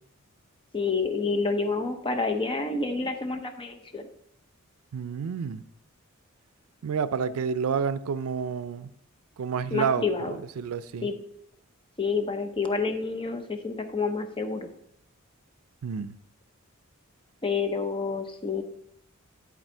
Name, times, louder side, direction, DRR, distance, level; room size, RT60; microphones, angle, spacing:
voice 1, 0.7-4.1 9.7-10.4 11.0-11.2 12.0-14.7 17.4-18.6, left 4 dB, 25° left, 0.7 m, -28 dB
voice 2, 4.9-5.6 6.8-8.9 9.4-11.1 15.8-16.1, right 6 dB, 80° right, 0.4 m, -29 dB
11.0 x 4.1 x 4.4 m
head